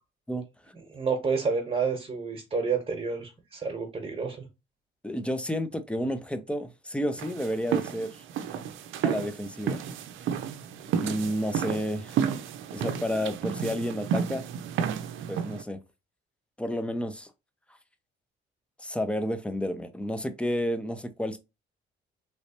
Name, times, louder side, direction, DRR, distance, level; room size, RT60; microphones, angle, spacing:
voice 1, 0.3-0.7 5.0-8.2 9.0-9.8 11.0-12.2 12.7-14.5 15.3-15.8 16.6-17.3 18.8-21.4, equal, 5° left, 0.6 m, -31 dB
voice 2, 0.9-4.5, right 5 dB, 30° right, 1.1 m, -29 dB
sound 1, 7.2-15.6, right 8 dB, 80° right, 0.5 m, -31 dB
3.2 x 3.1 x 2.9 m
cardioid pair, 90°, 20 cm